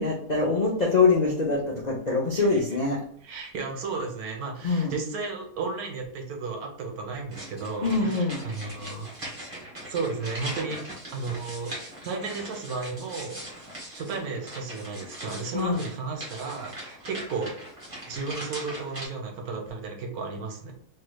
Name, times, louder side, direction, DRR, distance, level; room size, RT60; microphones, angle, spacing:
voice 1, 0.0-3.0 4.6-4.9 7.8-8.4 15.5-15.8, left 3 dB, 60° left, -3 dB, 0.4 m, -24 dB
voice 2, 3.2-9.1 9.9-10.8 11.1-11.7 12.0-17.5 18.0-20.7, right 4 dB, 70° right, 2 dB, 1.3 m, -34 dB
sound 1, 7.3-19.1, right 1 dB, 20° right, 1.3 m, -40 dB
3.1 x 3.1 x 2.2 m, 0.66 s
omnidirectional pair, 1.7 m